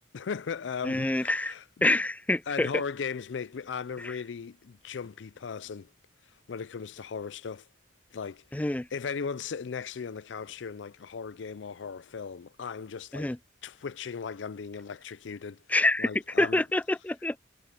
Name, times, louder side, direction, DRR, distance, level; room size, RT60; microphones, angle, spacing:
voice 1, 0.1-1.6 2.5-5.9 6.5-7.7 8.1-8.6 8.9-13.3 13.6-15.6 16.0-16.6, left 6 dB, 85° left, 0.5 m, -37 dB
voice 2, 0.8-1.5 1.8-2.7 4.0-4.1 8.5-8.9 13.1-13.4 15.7-16.1 16.4-17.4, left 2 dB, 10° left, 0.3 m, -26 dB
sound 1, 5.0-5.8 7.0-7.5 8.5-8.7 9.8-10.6, equal, 25° left, 6.5 m, -64 dB
head